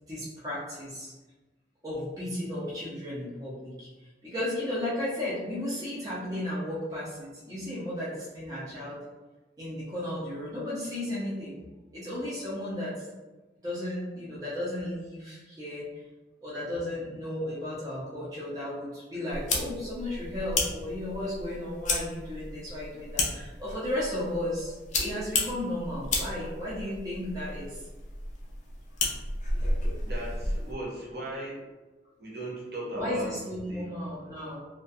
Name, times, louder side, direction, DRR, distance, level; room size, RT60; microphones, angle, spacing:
voice 1, 0.1-1.1 1.8-3.9 4.2-9.0 9.6-11.7 11.9-13.0 13.6-15.8 16.4-27.8 33.0-34.6, left 1 dB, 20° right, -8 dB, 0.5 m, -34 dB
sound 1, 19.3-30.7, left 2 dB, 40° left, 0.4 m, -33 dB
voice 2, 30.0-31.6 32.2-33.3 33.6-33.9, right 1 dB, 60° right, -5 dB, 0.7 m, -36 dB
2.3 x 2.1 x 2.6 m, 1.2 s
head